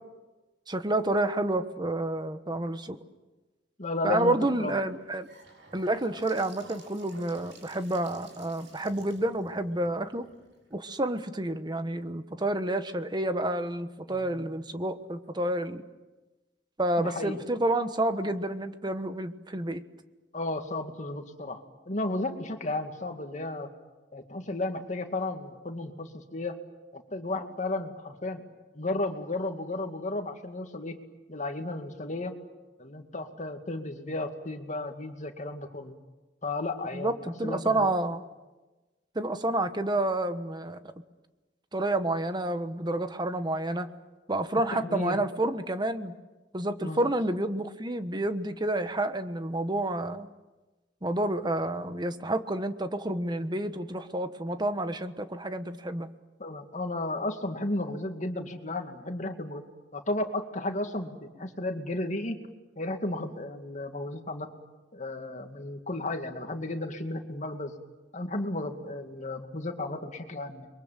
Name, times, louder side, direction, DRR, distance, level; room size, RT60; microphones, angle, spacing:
voice 1, 0.7-3.0 4.0-5.3 5.7-10.3 10.7-15.8 16.8-19.8 36.9-38.2 39.1-40.8 41.7-43.9 44.3-46.1 46.5-50.3 51.0-56.1, right 1 dB, 25° right, 10 dB, 1.3 m, -29 dB
voice 2, 3.8-4.8 14.1-14.4 17.0-17.4 20.3-21.6 21.9-23.7 24.1-26.6 26.9-28.4 28.7-31.0 31.3-32.4 32.8-35.9 36.4-38.0 44.7-45.3 46.8-47.1 56.4-59.6 59.9-62.4 62.8-64.5 64.9-67.7 68.1-70.7, left 2 dB, 45° left, 5 dB, 2.3 m, -34 dB
Gurgling / Sink (filling or washing) / Bathtub (filling or washing), 4.9-10.9, right 3 dB, 85° right, 6.8 m, -52 dB
30.0 x 23.0 x 7.6 m, 1.2 s
head